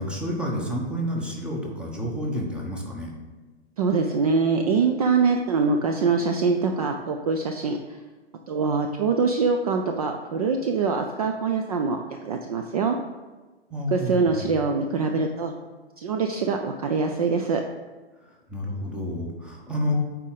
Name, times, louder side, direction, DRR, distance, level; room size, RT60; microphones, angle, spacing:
voice 1, 0.0-3.1 13.7-14.4 18.3-19.9, equal, 5° right, -2 dB, 1.0 m, -30 dB
voice 2, 3.8-7.8 8.5-13.0 13.9-15.5 16.0-17.6, right 4 dB, 35° right, 4 dB, 0.4 m, -24 dB
8.1 x 4.5 x 4.0 m, 1.3 s
figure-of-eight pair, 120°, 33 cm